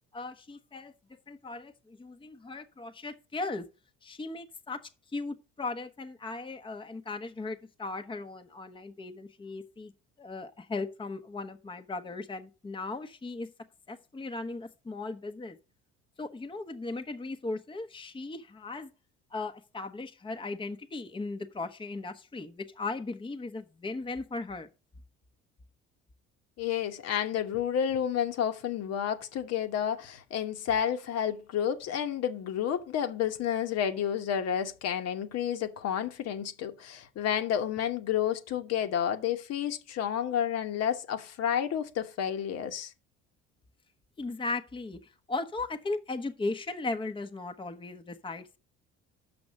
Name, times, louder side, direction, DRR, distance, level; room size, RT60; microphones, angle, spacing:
voice 1, 0.1-0.9 1.3-3.7 4.0-4.8 5.1-9.9 10.2-13.5 13.9-15.6 16.2-18.9 19.3-24.7 44.2-48.5, left 3 dB, 15° left, 1.0 m, -37 dB
voice 2, 26.6-42.9, left 9 dB, 60° left, 1.2 m, -30 dB
6.2 x 6.1 x 6.4 m
supercardioid pair, 75°, 29 cm